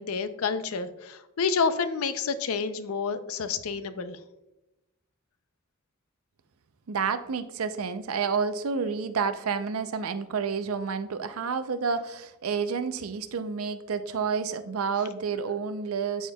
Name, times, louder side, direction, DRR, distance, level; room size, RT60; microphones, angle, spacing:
voice 1, 0.0-4.2, left 5 dB, 80° left, 12 dB, 0.5 m, -29 dB
voice 2, 6.9-16.3, right 5 dB, 80° right, 11 dB, 0.5 m, -29 dB
13.0 x 4.3 x 2.3 m, 0.96 s
head